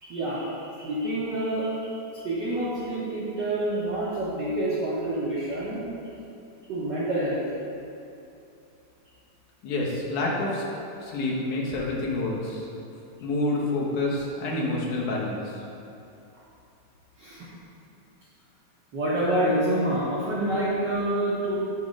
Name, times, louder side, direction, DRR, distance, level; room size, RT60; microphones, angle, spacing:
voice 1, 0.0-5.8 6.7-7.4 17.2-17.5 18.9-21.6, right 1 dB, 65° right, -10 dB, 1.1 m, -27 dB
voice 2, 9.6-10.6 11.0-12.7 13.2-15.6, left 2 dB, 90° left, -3 dB, 2.6 m, -28 dB
9.2 x 3.2 x 5.1 m, 2.7 s
omnidirectional pair, 3.4 m